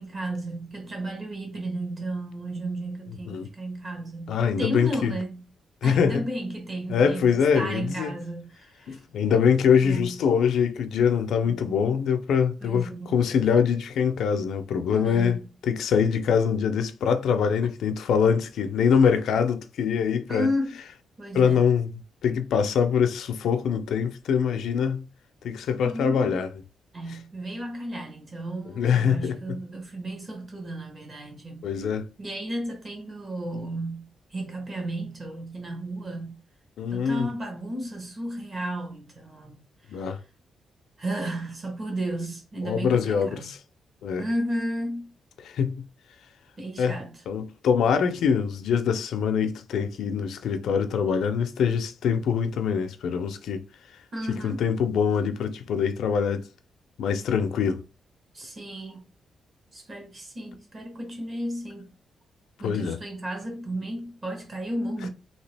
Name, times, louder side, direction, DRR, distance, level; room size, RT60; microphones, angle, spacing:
voice 1, 0.0-5.5 5.8-9.0 9.8-10.2 11.4-11.6 12.6-13.2 14.9-15.4 20.3-20.8 21.2-21.6 25.8-26.4 26.9-31.7 32.2-36.4 36.9-40.1 41.0-43.5 44.2-45.1 46.6-47.2 54.1-54.7 58.3-59.1 59.7-61.9 62.6-65.1, right 1 dB, 30° right, 1.3 m, -33 dB
voice 2, 4.3-5.1 5.8-6.2 6.9-8.1 8.9-20.5 21.3-21.9 22.2-25.1 25.4-26.5 28.8-29.6 31.6-32.1 36.8-37.3 39.9-40.2 42.6-43.6 44.0-44.2 45.4-45.8 46.8-47.0 47.3-53.6 54.3-56.5 57.0-57.8 62.6-63.0, left 7 dB, 85° left, 0.4 m, -24 dB
2.8 x 2.8 x 3.3 m
cardioid pair, 135°, 0 cm